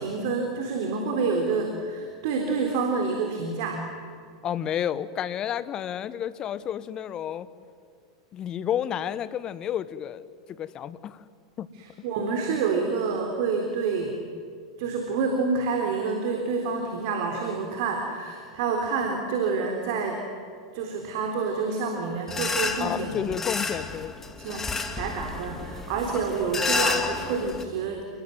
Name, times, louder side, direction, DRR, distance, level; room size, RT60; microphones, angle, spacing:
voice 1, 0.0-3.9 11.7-14.2 14.8-20.2 20.7-23.3 24.4-28.1, right 4 dB, 55° right, 3 dB, 3.8 m, -28 dB
voice 2, 4.4-7.5 8.3-10.2 10.5-11.2 11.6-11.7 22.8-24.1, left 9 dB, 35° left, 15 dB, 1.3 m, -30 dB
sound 1, 22.3-27.6, left 4 dB, 15° left, 2.7 m, -30 dB
29.5 x 20.5 x 9.5 m, 2.2 s
figure-of-eight pair, 90°, 2 cm